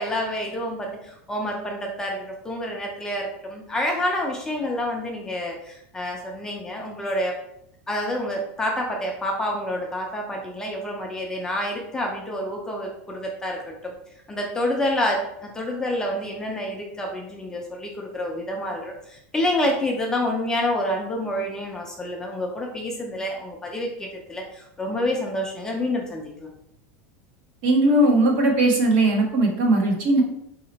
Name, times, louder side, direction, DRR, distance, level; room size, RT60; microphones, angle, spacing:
voice 1, 0.0-7.4 7.9-13.9 14.3-26.5, left 1 dB, 10° left, 0 dB, 0.4 m, -28 dB
voice 2, 27.6-30.2, right 1 dB, 55° right, 1 dB, 1.1 m, -19 dB
4.2 x 2.9 x 3.9 m, 0.78 s
supercardioid pair, 170°, 7 cm